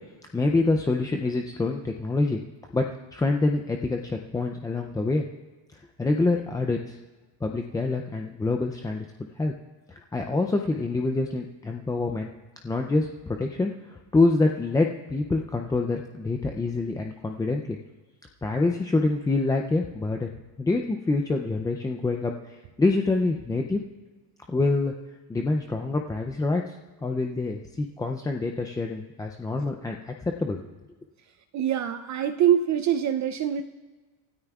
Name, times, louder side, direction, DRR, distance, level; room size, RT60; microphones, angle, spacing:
voice 1, 0.3-2.4 2.7-2.9 3.1-5.2 6.0-7.0 7.4-9.1 9.4-9.5 9.9-12.3 12.6-13.7 14.1-17.8 18.4-20.3 20.6-23.8 24.5-24.9 25.3-26.7 27.0-30.6, left 3 dB, 10° left, 3 dB, 0.3 m, -26 dB
voice 2, 31.5-33.6, right 9 dB, 40° right, 7 dB, 0.5 m, -24 dB
28.5 x 13.0 x 2.4 m, 1.3 s
cardioid pair, 140°, 46 cm